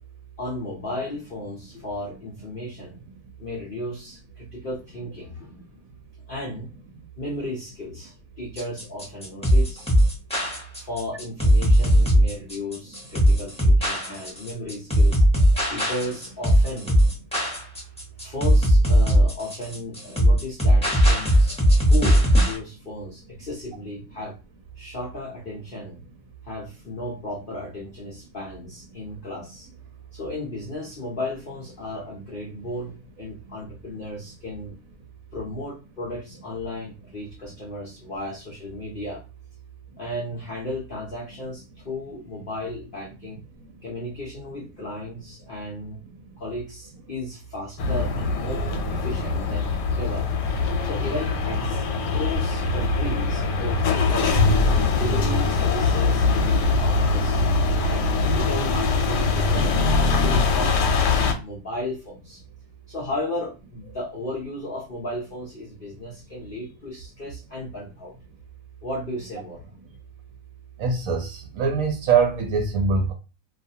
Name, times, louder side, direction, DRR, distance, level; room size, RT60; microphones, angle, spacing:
voice 1, 0.4-3.0 3.4-5.7 6.3-6.7 7.2-9.9 10.8-15.2 15.7-17.0 18.2-24.3 24.8-26.0 26.4-29.7 30.1-34.9 35.3-39.2 40.0-43.4 43.8-46.0 46.4-49.7 50.0-50.3 50.8-54.4 54.8-61.0 61.3-62.4 62.9-68.1 68.8-69.6, left 1 dB, 55° left, -4 dB, 0.6 m, -34 dB
sound 1, 8.6-22.6, equal, 5° left, 0.7 m, -18 dB
sound 2, 47.8-61.3, left 3 dB, 85° left, 1.2 m, -22 dB
voice 2, 70.8-73.1, right 5 dB, 70° right, 3 dB, 0.9 m, -23 dB
2.5 x 2.4 x 2.7 m, 0.31 s
omnidirectional pair, 1.7 m